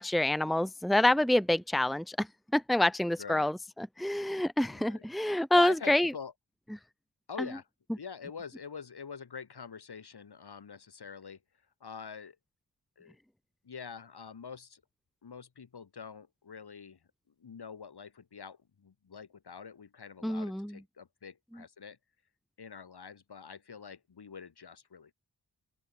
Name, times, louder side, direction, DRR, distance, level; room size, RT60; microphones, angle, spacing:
voice 1, 0.0-2.3 2.5-6.1 20.2-20.8, left 1 dB, ahead, 1.1 m, -27 dB
voice 2, 3.2-3.5 4.7-6.3 7.3-7.7 8.0-11.4 11.8-12.4 13.0-13.2 13.6-14.8 15.2-17.0 17.4-22.0 22.6-25.1, left 6 dB, 75° left, 6.6 m, -45 dB
open air
cardioid pair, 55°, 39 cm